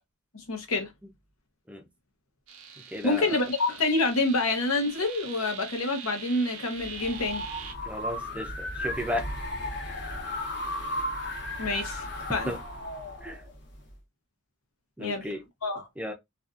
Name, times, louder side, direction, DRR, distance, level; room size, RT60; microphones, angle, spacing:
voice 1, 0.3-0.9 3.0-7.4 11.6-12.0 12.3-12.5 15.0-15.3 15.6-15.9, left 2 dB, 85° left, 0.9 m, -27 dB
sound 1, 2.5-7.7, right 7 dB, 85° right, 0.7 m, -43 dB
voice 2, 2.9-3.4 7.9-9.2 12.5-12.6 13.2-13.4 15.0-15.4 16.0-16.1, left 1 dB, 5° right, 0.4 m, -34 dB
sound 2, 6.8-13.9, left 1 dB, 55° left, 0.9 m, -35 dB
2.6 x 2.4 x 2.4 m
head